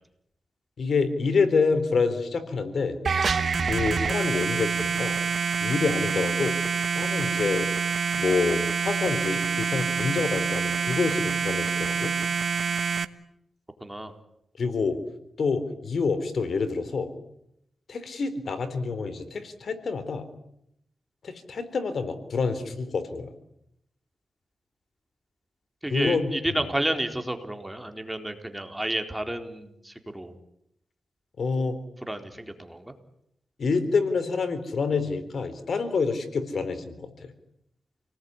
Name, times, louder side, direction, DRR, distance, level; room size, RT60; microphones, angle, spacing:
voice 1, 0.8-3.0 3.6-5.2 5.6-6.6 6.9-7.7 8.1-12.1 14.6-15.0 15.4-17.1 17.9-20.2 21.2-23.3 25.9-26.7 31.4-31.8 33.6-37.3, left 4 dB, 65° left, 10 dB, 4.0 m, -27 dB
sound 1, 3.0-13.0, right 5 dB, 60° right, 1.5 m, -26 dB
voice 2, 13.8-14.1 25.8-30.3 32.1-32.9, right 1 dB, 10° right, 5 dB, 4.1 m, -31 dB
29.5 x 19.5 x 9.8 m, 0.77 s
cardioid pair, 65°, 0 cm